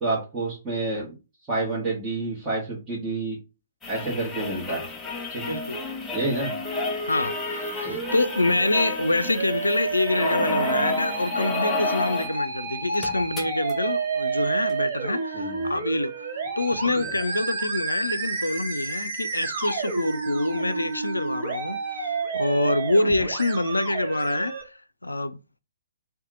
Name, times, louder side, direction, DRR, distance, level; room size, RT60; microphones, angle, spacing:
voice 1, 0.0-1.1 1.5-3.4 3.9-4.8 5.3-5.4 6.1-6.5 7.8-8.0 15.3-15.6 16.9-17.0, right 2 dB, 15° right, 1.2 m, -28 dB
sound 1, 3.8-12.4 12.7-12.8 12.9-13.7 14.7-14.8, left 2 dB, 10° left, 0.8 m, -31 dB
voice 2, 5.4-5.8 7.0-16.3 16.6-25.4, left 2 dB, 80° left, 0.3 m, -26 dB
Musical instrument, 6.6-24.6, right 3 dB, 40° right, 1.1 m, -30 dB
2.7 x 2.3 x 3.7 m
figure-of-eight pair, 125°, 0 cm